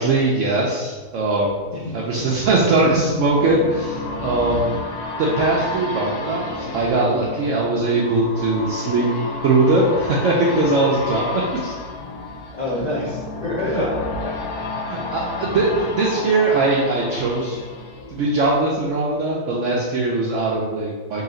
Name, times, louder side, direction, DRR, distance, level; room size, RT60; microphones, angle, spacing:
voice 1, 0.0-1.5 1.9-4.7 5.2-9.1 9.4-11.7 13.6-13.9 14.9-17.6 18.1-21.2, right 2 dB, 65° right, -4 dB, 0.8 m, -20 dB
sound 1, 1.0-18.8 19.2-19.3, left 2 dB, 85° left, 1.2 m, -31 dB
voice 2, 1.7-2.3 4.6-4.7 12.5-14.3, left 2 dB, 70° left, -5 dB, 0.4 m, -27 dB
3.9 x 2.4 x 3.7 m, 1.3 s
omnidirectional pair, 1.6 m